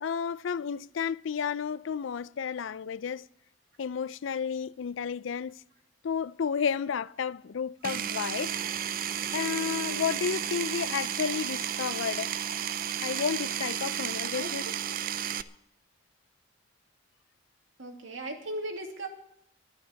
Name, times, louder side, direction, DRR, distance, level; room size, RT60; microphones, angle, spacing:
voice 1, 0.0-3.3 3.8-5.6 6.0-8.5 9.3-12.3 13.0-14.6, left 6 dB, 75° left, 0.4 m, -32 dB
Power tool, 7.8-15.4, right 9 dB, 45° right, 0.5 m, -33 dB
voice 2, 14.3-14.7 17.8-19.1, right 1 dB, 80° right, 2.5 m, -38 dB
12.0 x 11.5 x 7.0 m
head